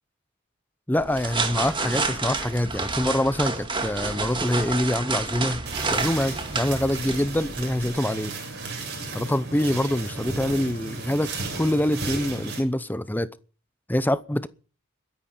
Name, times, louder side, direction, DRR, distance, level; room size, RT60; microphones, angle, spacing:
voice 1, 0.9-5.6 5.9-8.3 9.1-13.3 13.9-14.5, left 1 dB, 10° left, 0.7 m, -25 dB
sound 1, 1.0-7.8, right 3 dB, 25° right, 2.1 m, -29 dB
sound 2, 5.7-12.6, right 3 dB, 55° right, 7.3 m, -34 dB
22.5 x 10.0 x 5.6 m
head